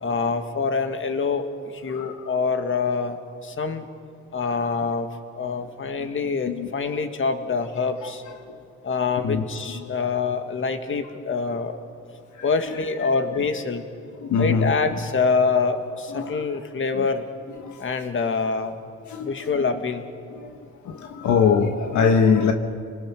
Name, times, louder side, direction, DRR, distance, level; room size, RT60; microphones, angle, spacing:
voice 1, 0.0-3.8 4.3-5.1 5.4-8.2 8.8-11.8 12.4-13.8 14.4-17.2 17.8-18.7 19.2-20.0, left 4 dB, 40° left, 2.0 m, -25 dB
voice 2, 12.4-12.7 14.2-14.7 16.1-16.4 17.0-17.1 17.6-17.8 19.1-19.5 20.3-20.6 20.8-22.5, left 6 dB, 70° left, 1.4 m, -22 dB
30.0 x 20.5 x 6.2 m
cardioid pair, 90°, 30 cm